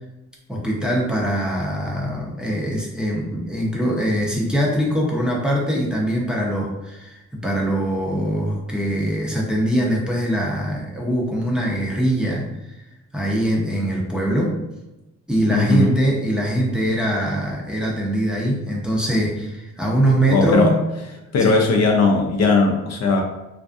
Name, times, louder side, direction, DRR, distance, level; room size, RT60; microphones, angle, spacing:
voice 1, 0.5-12.5 13.1-14.6 15.3-20.7 21.4-21.6, right 1 dB, 5° right, -4 dB, 0.6 m, -22 dB
voice 2, 15.5-16.0 20.3-20.8 21.3-23.2, left 3 dB, 60° left, 2 dB, 0.5 m, -18 dB
2.5 x 2.3 x 2.4 m, 0.99 s
cardioid pair, 90°, 30 cm